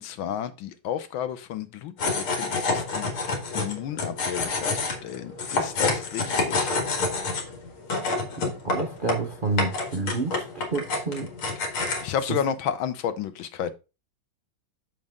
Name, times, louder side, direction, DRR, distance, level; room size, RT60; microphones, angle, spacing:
voice 1, 0.0-6.8 12.0-13.7, left 9 dB, 75° left, 1.5 m, -32 dB
sound 1, 2.0-12.1, left 3 dB, 90° left, 2.6 m, -28 dB
voice 2, 8.4-11.3 12.3-12.4, right 3 dB, 85° right, 0.4 m, -29 dB
7.4 x 6.4 x 3.6 m
omnidirectional pair, 2.3 m